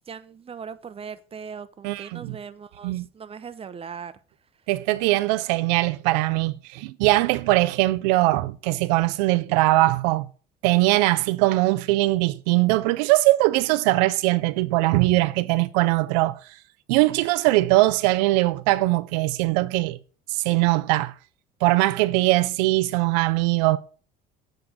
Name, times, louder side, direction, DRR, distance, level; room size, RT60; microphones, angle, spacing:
voice 1, 0.1-4.1, right 6 dB, 25° right, 0.7 m, -39 dB
voice 2, 1.8-2.4 2.8-3.1 4.7-10.3 10.6-16.4 16.9-20.0 20.3-21.1 21.6-23.8, right 19 dB, 80° right, 0.4 m, -21 dB
7.8 x 3.8 x 5.9 m
hypercardioid pair, 70°, 21 cm